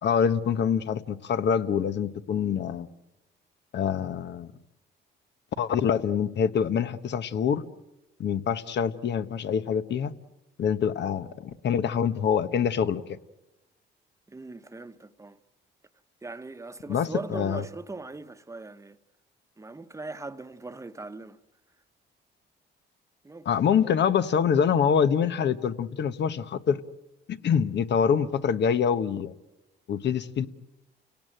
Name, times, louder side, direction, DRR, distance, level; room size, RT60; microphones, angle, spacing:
voice 1, 0.0-2.9 3.7-4.5 5.6-7.6 8.2-10.1 10.6-13.2 16.9-17.6 23.5-26.8 27.3-29.3 29.9-30.5, left 7 dB, 60° left, 1.2 m, -25 dB
voice 2, 14.3-15.4 16.2-19.0 19.6-21.4 23.2-23.5, right 3 dB, 15° right, 1.1 m, -40 dB
30.0 x 18.0 x 9.1 m
cardioid pair, 90°, 20 cm